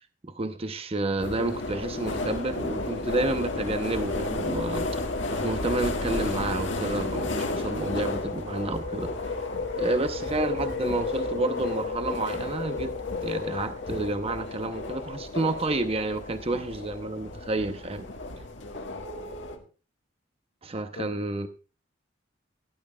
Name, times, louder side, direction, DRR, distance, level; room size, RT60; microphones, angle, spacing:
voice 1, 0.2-9.3 9.8-12.9 13.2-18.1 20.6-21.5, right 2 dB, 30° right, 0.7 m, -30 dB
sound 1, 1.2-19.6, left 2 dB, 70° left, 1.8 m, -32 dB
voice 2, 7.4-7.9 18.6-19.7 20.9-21.2, left 2 dB, 85° left, 1.8 m, -44 dB
17.0 x 11.0 x 2.3 m
head